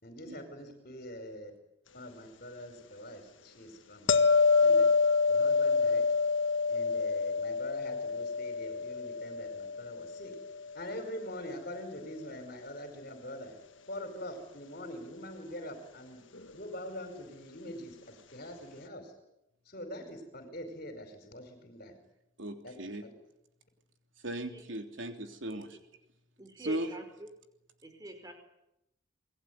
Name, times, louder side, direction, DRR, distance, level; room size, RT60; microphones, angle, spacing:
voice 1, 0.0-1.5 1.9-4.2 4.6-4.9 5.3-6.1 6.7-10.4 10.7-13.6 13.9-16.2 16.5-19.1 19.6-22.0 22.6-22.7, equal, 45° left, 5 dB, 4.9 m, -44 dB
sound 1, 4.1-11.1 16.3-16.5, left 4 dB, 75° left, 1.6 m, -27 dB
voice 2, 22.4-23.0 24.2-25.7 26.6-26.9, right 1 dB, 75° right, 5 dB, 3.3 m, -37 dB
voice 3, 26.4-27.3 27.8-28.3, right 1 dB, 20° right, 6 dB, 5.0 m, -45 dB
29.0 x 21.0 x 9.5 m, 0.85 s
head